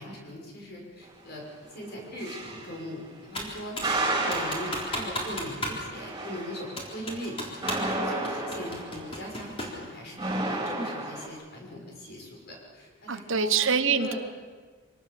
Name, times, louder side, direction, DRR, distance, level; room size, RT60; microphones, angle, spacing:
voice 1, 0.0-1.4 1.7-3.7 4.1-7.4 7.8-10.1 10.4-13.5 13.8-14.2, equal, 45° left, -1 dB, 6.2 m, -39 dB
sound 1, 1.7-2.8 3.8-9.3 10.2-11.3, right 2 dB, 15° right, 3.5 m, -32 dB
Computer keyboard, 3.3-4.0 4.3-5.8 6.1-6.2 6.8-7.9 8.2-9.8, left 1 dB, 25° left, 4.0 m, -34 dB
voice 2, 13.1-14.1, right 6 dB, 65° right, 10 dB, 1.1 m, -25 dB
25.0 x 18.5 x 7.1 m, 1.5 s
head